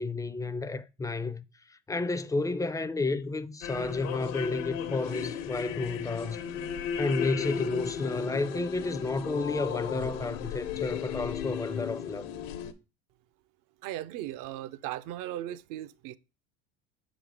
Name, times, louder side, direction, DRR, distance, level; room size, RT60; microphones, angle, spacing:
voice 1, 0.0-1.4 1.7-6.4 7.0-12.3, left 3 dB, 10° left, 0.4 m, -31 dB
sound 1, 3.6-12.7, left 8 dB, 80° left, 1.0 m, -35 dB
voice 2, 13.8-16.2, right 13 dB, 60° right, 0.6 m, -37 dB
6.8 x 4.1 x 4.7 m
supercardioid pair, 90°, 37 cm